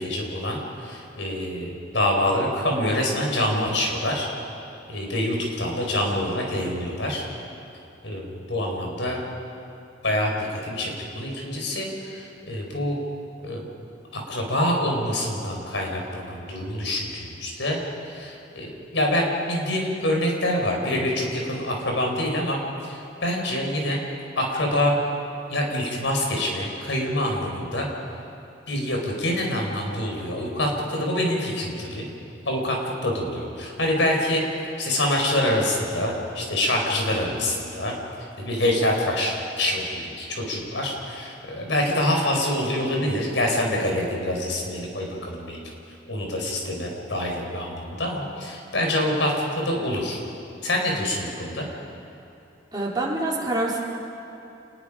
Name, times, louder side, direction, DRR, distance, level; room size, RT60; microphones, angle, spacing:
voice 1, 0.0-4.3 4.9-7.2 8.0-9.2 10.0-13.0 13.4-13.7 14.1-24.0 24.3-24.9 25.5-27.9 28.7-32.1 32.4-37.9 38.4-45.6 46.1-50.2 50.6-51.7, left 1 dB, 85° left, 0 dB, 5.0 m, -26 dB
voice 2, 52.7-53.8, right 2 dB, 25° right, -4 dB, 4.1 m, -26 dB
29.0 x 20.5 x 5.1 m, 2.9 s
head